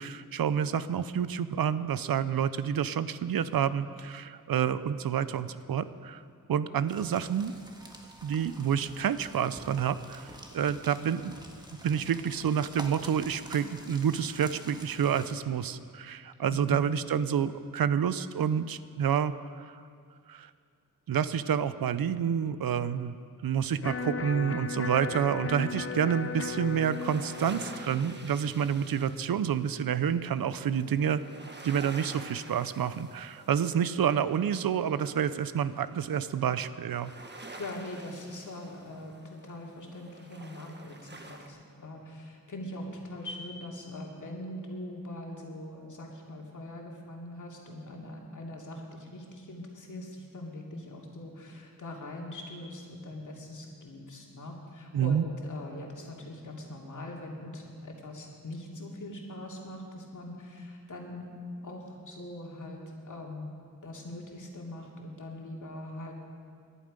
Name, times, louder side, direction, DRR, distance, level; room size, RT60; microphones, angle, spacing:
voice 1, 0.0-6.2 6.5-7.5 8.2-10.3 10.5-11.3 11.7-19.8 20.3-20.5 21.1-23.2 23.4-31.2 31.6-37.1 54.9-55.2, right 8 dB, 85° right, 14 dB, 0.6 m, -29 dB
sound 1, 6.9-15.3, right 1 dB, 10° right, 1.6 m, -48 dB
voice 2, 16.5-16.9 34.0-34.1 37.3-61.3 61.6-63.5 63.8-66.1, left 1 dB, 60° left, -1 dB, 2.6 m, -42 dB
Electric guitar, 23.8-29.9, left 4 dB, 40° left, 0.6 m, -37 dB
sound 2, 26.1-41.5, right 2 dB, 30° right, 1.3 m, -49 dB
19.5 x 11.0 x 5.2 m, 2.2 s
wide cardioid pair, 95°, 34 cm